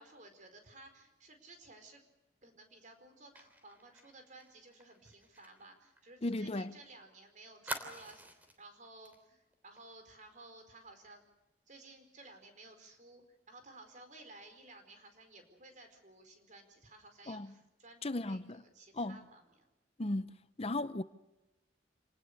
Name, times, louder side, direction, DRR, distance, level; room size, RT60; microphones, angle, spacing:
voice 1, 0.0-2.0 2.4-11.2 11.7-19.6 20.0-20.1, right 2 dB, 45° right, 4.7 m, -56 dB
Fire, 3.4-6.8 7.1-7.2 7.7-8.6 9.0-9.2 9.5-9.8, right 1 dB, 10° right, 3.2 m, -46 dB
voice 2, 6.2-6.8 17.3-17.5 18.0-18.6 18.9-19.2 20.0-21.0, left 2 dB, 35° left, 0.8 m, -36 dB
27.5 x 19.0 x 6.7 m
head